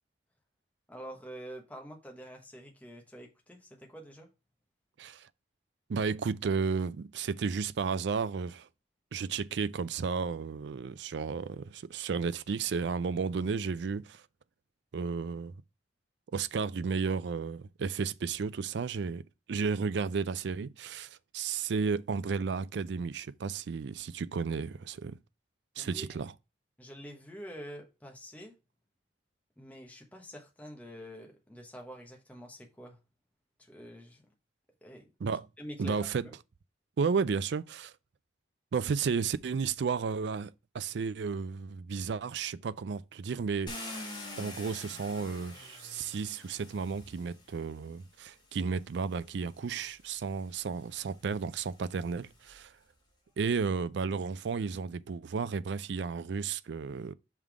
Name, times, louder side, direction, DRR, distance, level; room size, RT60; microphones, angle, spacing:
voice 1, 0.9-4.3 25.8-26.2 26.8-28.5 29.6-33.0 33.6-34.3 34.8-35.1 35.6-36.3, equal, 10° left, 1.0 m, -46 dB
voice 2, 5.9-8.7 9.1-14.2 14.9-15.5 16.3-19.2 19.5-25.2 25.8-26.3 35.2-35.5 35.8-36.2 37.0-37.9 38.7-44.0 44.4-52.7 53.4-57.1, right 5 dB, 65° right, 0.4 m, -33 dB
Car, 43.7-47.8 48.7-48.8 49.3-52.6, left 2 dB, 25° left, 1.5 m, -47 dB
5.5 x 3.6 x 4.7 m
head